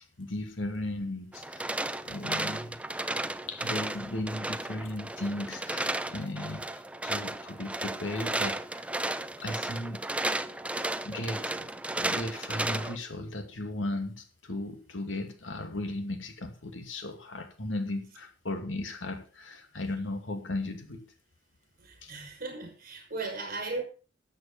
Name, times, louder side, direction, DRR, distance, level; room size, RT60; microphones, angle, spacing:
voice 1, 0.0-1.8 2.1-2.8 3.5-8.9 9.4-10.1 11.0-11.7 11.9-21.0 22.0-22.1, left 1 dB, 80° left, 6 dB, 2.4 m, -36 dB
sound 1, 1.3-13.0, right 2 dB, 5° right, 0.6 m, -34 dB
voice 2, 21.8-23.8, right 3 dB, 50° right, 3 dB, 5.8 m, -37 dB
13.0 x 8.0 x 5.5 m, 0.36 s
head